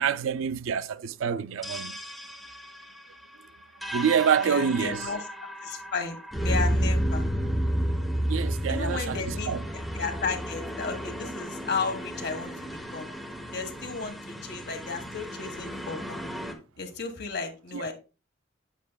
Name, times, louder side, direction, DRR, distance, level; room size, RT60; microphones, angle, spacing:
voice 1, 0.0-2.0 3.9-5.1 8.3-9.7 17.7-17.9, right 7 dB, 85° right, 0.4 m, -27 dB
sound 1, 1.6-16.5, equal, ahead, 0.9 m, -32 dB
voice 2, 4.4-5.2 5.6-7.2 8.7-12.5 12.9-13.1 13.5-16.2 16.8-17.9, left 4 dB, 55° left, 1.5 m, -34 dB
8.5 x 7.3 x 2.2 m
head